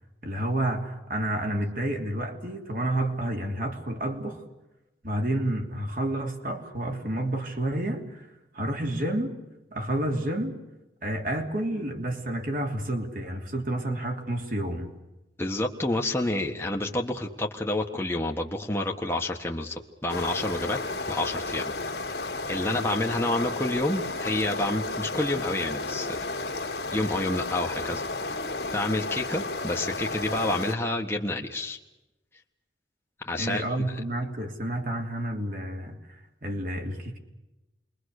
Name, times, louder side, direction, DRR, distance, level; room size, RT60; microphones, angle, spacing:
voice 1, 0.2-4.4 5.0-8.3 8.5-9.3 9.7-10.6 11.0-14.9 33.4-37.2, right 1 dB, 50° right, 3 dB, 3.2 m, -30 dB
voice 2, 15.4-20.8 21.0-21.7 22.5-26.2 26.9-28.0 28.7-31.8 33.2-33.6, left 2 dB, 15° left, 0 dB, 1.5 m, -29 dB
sound 1, 20.1-30.7, left 2 dB, 70° left, 2.3 m, -32 dB
28.0 x 22.5 x 6.6 m, 1.0 s
head